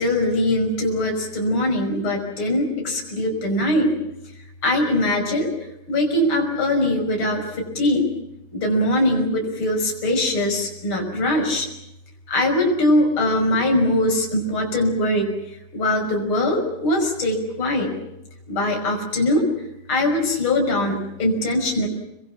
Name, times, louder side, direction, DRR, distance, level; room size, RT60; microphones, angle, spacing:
voice 1, 0.0-4.0 4.6-5.5 5.9-8.1 8.5-11.7 12.3-17.9 18.5-19.5 19.9-21.9, left 1 dB, 30° left, 1 dB, 6.2 m, -21 dB
28.5 x 22.0 x 7.5 m, 0.89 s
omnidirectional pair, 4.5 m